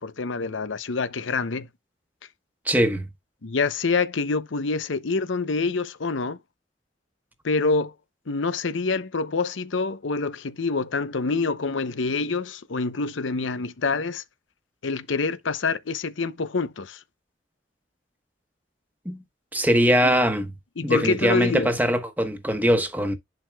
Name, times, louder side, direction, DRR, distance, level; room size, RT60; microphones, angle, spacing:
voice 1, 0.0-1.7 3.4-6.4 7.4-7.9 8.3-14.2 14.8-17.0 20.0-20.1 20.8-21.8, left 4 dB, 80° left, 0.8 m, -26 dB
voice 2, 2.6-3.1 19.0-19.2 19.5-20.5 20.8-23.1, equal, 10° right, 1.2 m, -22 dB
10.5 x 4.7 x 2.3 m
head